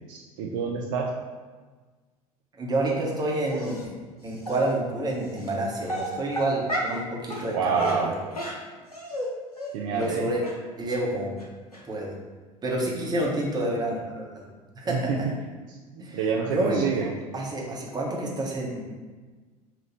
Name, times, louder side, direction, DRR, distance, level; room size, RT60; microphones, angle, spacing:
voice 1, 0.1-1.1 7.5-8.1 9.7-10.3 14.8-15.3 15.7-17.1, right 5 dB, 55° right, -1 dB, 0.5 m, -28 dB
voice 2, 2.6-3.8 4.2-8.2 9.9-10.4 10.8-11.3 11.8-12.1 12.6-14.5 14.7-15.3 16.0-16.2 16.5-16.9 17.3-18.8, right 1 dB, 20° right, -3 dB, 1.1 m, -28 dB
Dog, 3.5-3.8 4.4-4.6 5.4-5.5 5.8-7.0 7.3-7.5 7.8-9.3 9.6-9.7 10.0-10.1 10.4-10.5 10.9-11.0 11.4-11.5 11.7-11.8, equal, 90° left, 0.7 m, -32 dB
5.8 x 2.5 x 3.1 m, 1.4 s
figure-of-eight pair, 70°, 19 cm